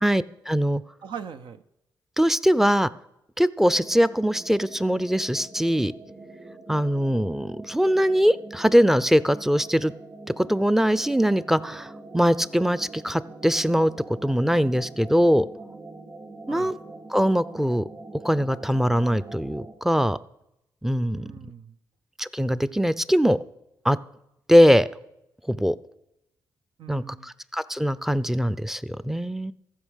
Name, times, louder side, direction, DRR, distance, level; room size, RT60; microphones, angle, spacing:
voice 1, 0.0-0.8 2.2-2.9 3.4-5.9 6.7-9.9 10.4-13.9 14.2-15.5 16.5-16.7 17.1-17.8 18.2-20.2 20.8-21.3 22.2-23.4 23.8-24.0 24.5-24.9 25.5-25.8 26.9-29.5, equal, 5° right, 16 dB, 0.5 m, -22 dB
voice 2, 1.0-1.6 16.5-16.7 21.1-21.8 26.8-27.3, right 7 dB, 70° right, 9 dB, 0.6 m, -40 dB
sound 1, 3.7-19.7, right 3 dB, 45° right, 2.7 m, -44 dB
14.5 x 5.2 x 6.4 m, 0.84 s
supercardioid pair, 55°, 8 cm